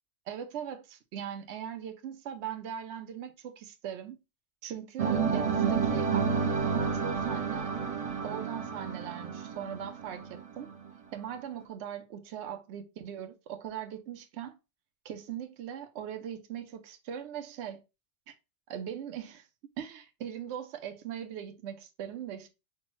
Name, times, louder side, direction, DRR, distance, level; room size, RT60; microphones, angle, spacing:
voice 1, 0.3-4.2 4.6-7.7 8.2-10.7 11.1-14.6 15.0-17.8 18.3-18.4 18.7-19.5 19.8-22.5, right 9 dB, 75° right, 0.9 m, -40 dB
sound 1, 5.0-10.9, right 6 dB, 40° right, 0.5 m, -30 dB
5.8 x 2.2 x 3.0 m
omnidirectional pair, 1.2 m